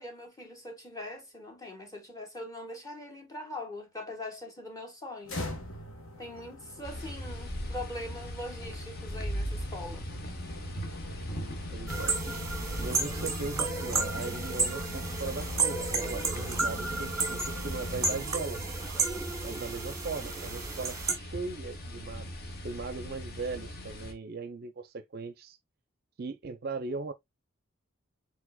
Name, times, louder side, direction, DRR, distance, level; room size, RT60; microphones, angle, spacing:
voice 1, 0.0-5.4 6.2-10.1, left 1 dB, 15° left, 1.1 m, -42 dB
sound 1, 5.2-18.2, left 2 dB, 75° left, 1.3 m, -43 dB
sound 2, 6.8-24.1, equal, 45° left, 0.9 m, -40 dB
voice 2, 11.7-12.2 12.8-18.6 19.4-25.6 26.2-27.1, right 4 dB, 45° right, 0.5 m, -38 dB
sound 3, 11.9-21.1, right 4 dB, 15° right, 1.0 m, -32 dB
4.8 x 4.2 x 2.2 m
head